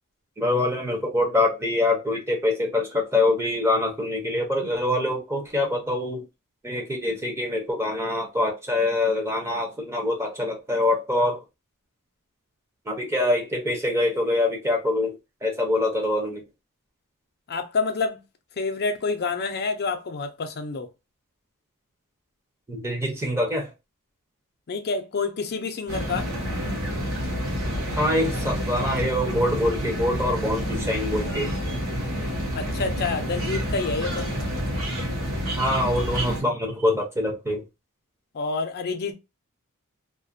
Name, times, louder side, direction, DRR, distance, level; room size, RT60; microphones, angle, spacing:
voice 1, 0.4-6.2 6.6-11.4 12.9-16.4 22.7-23.7 28.0-31.5 35.6-37.6, left 1 dB, 10° right, 0.6 m, -24 dB
voice 2, 17.5-18.2 18.6-20.9 24.7-26.3 32.5-34.3 38.3-39.1, left 4 dB, 45° left, 0.5 m, -28 dB
sound 1, 25.9-36.4, equal, 65° right, 0.9 m, -28 dB
2.4 x 2.1 x 2.5 m
head